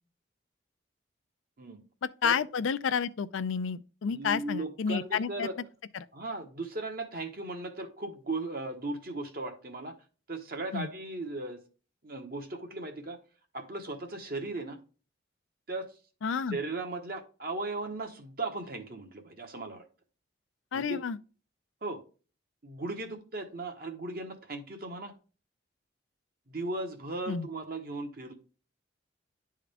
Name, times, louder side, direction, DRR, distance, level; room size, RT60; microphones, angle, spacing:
voice 1, 2.2-5.5 5.9-6.1 10.7-10.9 16.2-16.6 20.7-21.2 27.3-27.5, left 6 dB, 85° left, 0.4 m, -30 dB
voice 2, 4.1-5.5 6.1-9.9 10.3-11.6 12.0-13.2 13.5-14.8 15.7-15.9 16.5-19.8 20.7-21.0 21.8-22.0 22.6-25.1 26.5-28.4, right 2 dB, 50° right, 1.3 m, -37 dB
11.0 x 3.7 x 3.4 m
head